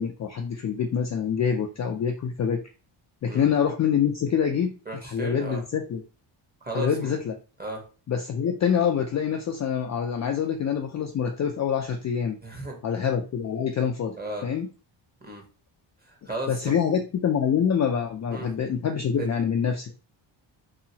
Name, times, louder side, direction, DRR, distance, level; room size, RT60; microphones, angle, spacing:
voice 1, 0.0-2.6 3.2-6.0 6.7-7.4 8.1-12.4 12.8-14.1 14.4-14.7 16.5-19.9, left 7 dB, 35° left, 2 dB, 0.4 m, -26 dB
voice 2, 4.9-5.6 6.6-7.1 7.6-7.8 12.4-12.8 14.2-14.4 15.2-15.4 16.0-16.8 18.3-18.5 19.2-19.3, right 2 dB, 20° right, 1 dB, 1.0 m, -35 dB
2.8 x 2.4 x 2.7 m, 0.34 s
cardioid pair, 75°, 50 cm